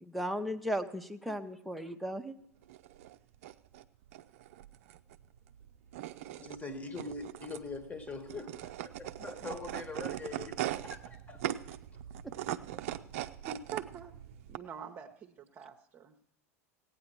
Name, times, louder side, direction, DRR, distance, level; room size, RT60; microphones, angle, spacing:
voice 1, 0.0-2.4, equal, ahead, 4 dB, 0.7 m, -36 dB
sound 1, 2.6-14.6, right 12 dB, 60° right, 0.5 m, -41 dB
voice 2, 6.4-11.6, left 3 dB, 15° left, 11 dB, 1.3 m, -43 dB
voice 3, 13.5-14.2 14.5-16.2, right 7 dB, 30° right, 2 dB, 0.9 m, -45 dB
16.5 x 8.9 x 4.5 m, 0.72 s
figure-of-eight pair, 85°, 8 cm